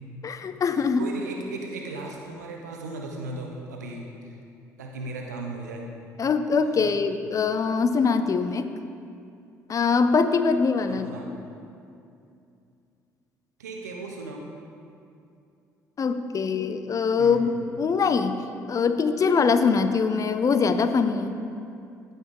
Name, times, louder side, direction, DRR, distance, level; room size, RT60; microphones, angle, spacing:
voice 1, 0.2-1.1 6.2-8.7 9.7-11.1 16.0-18.4 18.7-21.4, left 5 dB, 40° left, 10 dB, 0.6 m, -23 dB
voice 2, 1.0-4.3 4.8-5.8 6.8-6.9 10.9-11.3 13.6-14.5 17.2-17.4, right 2 dB, 85° right, 1 dB, 0.9 m, -36 dB
15.0 x 5.5 x 3.8 m, 2.6 s
hypercardioid pair, 55°, 9 cm